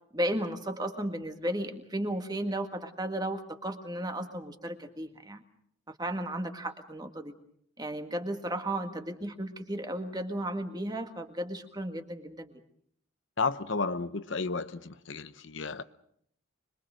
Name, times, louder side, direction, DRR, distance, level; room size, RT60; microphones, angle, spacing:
voice 1, 0.1-5.4 6.0-7.3 7.8-12.5, right 1 dB, 20° right, 1.8 m, -34 dB
voice 2, 13.4-15.8, left 4 dB, 60° left, 0.9 m, -32 dB
25.5 x 22.5 x 6.4 m
head